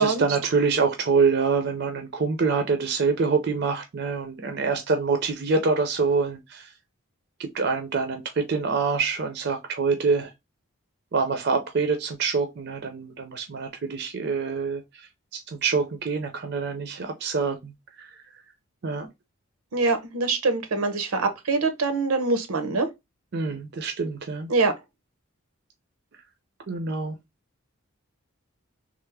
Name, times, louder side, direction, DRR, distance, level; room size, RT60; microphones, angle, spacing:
voice 1, 0.0-6.7 7.4-10.3 11.1-14.8 15.3-18.2 18.8-19.1 23.3-24.5 26.7-27.2, right 4 dB, 50° right, 0.5 m, -25 dB
voice 2, 19.7-22.9 24.5-24.7, right 3 dB, 85° right, 0.7 m, -24 dB
3.3 x 2.0 x 3.2 m
head